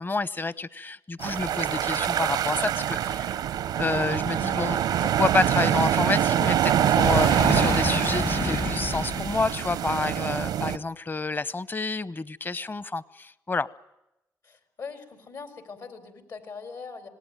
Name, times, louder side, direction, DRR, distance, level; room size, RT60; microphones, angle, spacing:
voice 1, 0.0-3.4 3.8-13.7, left 3 dB, 30° left, 19 dB, 0.9 m, -29 dB
sound 1, 1.2-10.8, right 10 dB, 90° right, 0.8 m, -25 dB
Boom, 7.0-9.8, left 4 dB, 55° left, 2.0 m, -29 dB
voice 2, 14.4-17.1, left 5 dB, 70° left, 9 dB, 4.2 m, -41 dB
26.5 x 18.5 x 9.1 m, 0.89 s
cardioid pair, 65°, 7 cm